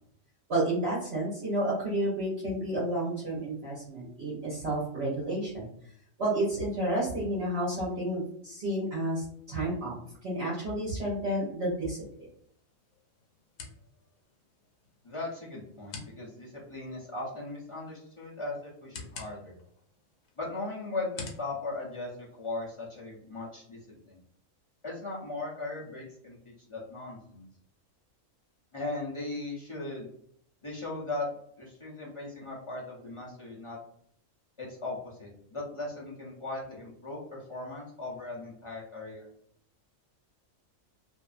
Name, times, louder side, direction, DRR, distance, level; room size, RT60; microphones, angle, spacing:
voice 1, 0.5-5.6 6.2-12.3, right 1 dB, 55° right, -7 dB, 1.1 m, -31 dB
sound 1, 11.8-22.8, left 4 dB, 85° left, 1.1 m, -50 dB
voice 2, 15.0-18.5 18.8-19.5 20.4-24.2 24.8-27.4 28.7-30.1 30.6-31.3 31.6-33.8 34.6-39.3, left 2 dB, 35° left, -5 dB, 0.5 m, -38 dB
2.6 x 2.4 x 2.4 m, 0.67 s
omnidirectional pair, 1.4 m